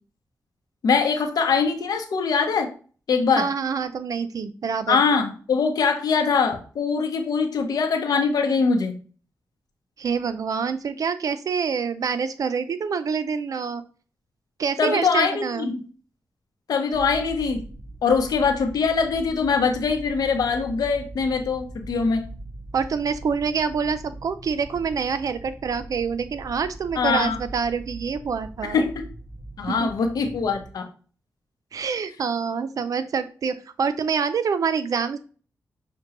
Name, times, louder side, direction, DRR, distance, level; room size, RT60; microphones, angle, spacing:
voice 1, 0.8-2.7 3.1-3.5 4.9-9.0 14.8-15.8 16.7-17.6 18.0-22.2 27.0-27.4 28.7-28.9 29.6-30.9, left 5 dB, 80° left, 6 dB, 0.7 m, -22 dB
voice 2, 3.3-5.0 10.0-13.8 14.6-15.7 22.7-28.8 29.7-29.9 31.7-35.2, right 6 dB, 65° right, 12 dB, 0.4 m, -26 dB
sound 1, 16.9-30.7, right 1 dB, 20° left, 1.0 m, -41 dB
5.7 x 2.2 x 2.9 m, 0.40 s
cardioid pair, 70°, 6 cm